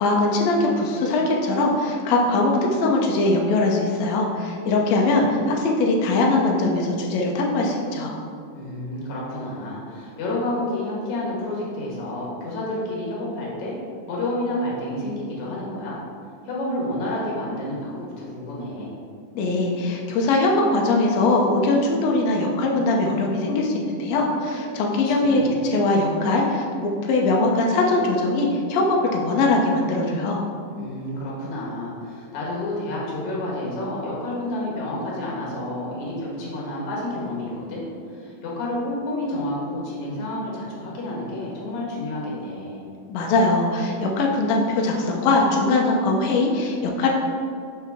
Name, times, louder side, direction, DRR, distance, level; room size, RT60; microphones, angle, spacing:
voice 1, 0.0-8.2 19.4-30.4 43.1-47.1, left 2 dB, 75° left, -1 dB, 1.7 m, -21 dB
voice 2, 4.8-5.3 8.5-13.8 14.1-16.0 16.4-18.9 25.0-25.6 30.7-37.8 38.1-42.8, left 1 dB, 55° left, -5 dB, 2.3 m, -30 dB
5.7 x 5.5 x 3.5 m, 2.3 s
omnidirectional pair, 3.6 m